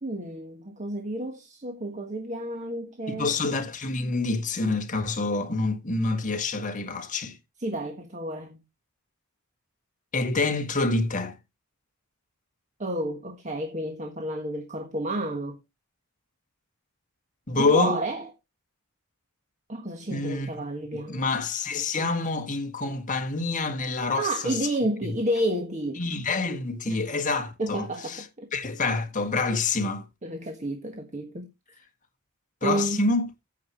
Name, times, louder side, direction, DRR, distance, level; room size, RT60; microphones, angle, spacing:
voice 1, 0.0-3.3 7.6-8.6 12.8-15.6 17.5-18.3 19.7-21.2 24.2-26.0 26.9-27.0 27.6-28.5 30.2-31.5 32.6-33.0, right 1 dB, 35° right, 1.5 m, -31 dB
voice 2, 3.1-7.4 10.1-11.4 17.5-18.0 20.1-20.5 20.9-24.6 25.0-25.1 26.0-28.2 28.5-30.1 32.6-33.2, left 3 dB, 35° left, 1.6 m, -27 dB
9.3 x 7.4 x 4.5 m
head